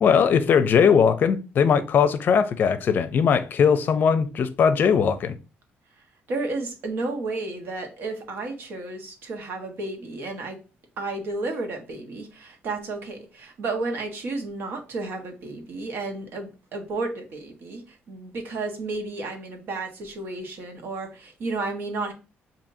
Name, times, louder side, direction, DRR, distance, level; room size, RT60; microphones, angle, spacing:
voice 1, 0.0-5.4, left 6 dB, 55° left, 0.5 m, -20 dB
voice 2, 6.3-10.6 11.0-17.8 18.1-22.1, right 3 dB, 65° right, 1.3 m, -32 dB
7.0 x 2.7 x 2.7 m
cardioid pair, 115°, 4 cm